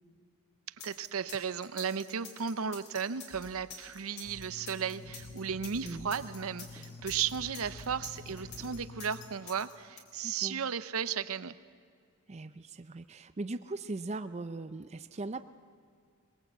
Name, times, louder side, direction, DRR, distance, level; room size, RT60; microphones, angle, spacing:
sound 1, 0.8-10.0, left 6 dB, 50° left, 3.5 m, -48 dB
voice 1, 0.8-11.6, right 7 dB, 75° right, 14 dB, 0.7 m, -35 dB
sound 2, 3.3-8.9, equal, 10° right, 2.0 m, -53 dB
sound 3, 4.3-9.3, left 3 dB, 75° left, 4.6 m, -49 dB
voice 2, 10.2-10.6 12.3-15.4, right 2 dB, 30° right, 11 dB, 0.5 m, -39 dB
21.5 x 20.5 x 8.1 m, 2.1 s
head